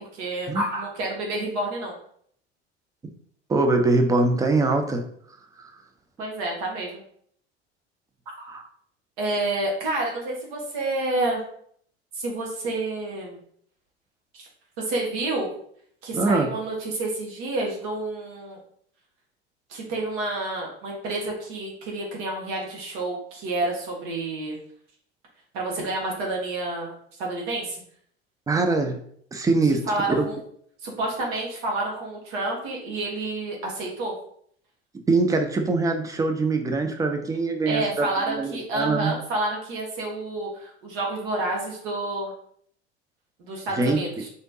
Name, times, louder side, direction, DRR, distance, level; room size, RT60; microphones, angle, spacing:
voice 1, 0.0-1.9 6.2-7.0 8.3-8.5 9.2-11.4 12.1-13.4 14.3-14.5 14.8-15.5 16.0-18.6 19.7-24.6 25.5-26.9 27.2-27.8 29.9-30.4 30.8-34.1 37.6-42.3 43.4-44.3, right 2 dB, 50° right, -1 dB, 1.4 m, -29 dB
voice 2, 3.5-5.0 8.5-8.6 16.1-16.5 28.5-29.0 29.3-30.3 35.1-39.1 43.8-44.0, right 3 dB, 10° right, 5 dB, 0.4 m, -23 dB
3.9 x 3.3 x 2.7 m, 0.63 s
figure-of-eight pair, 70°, 33 cm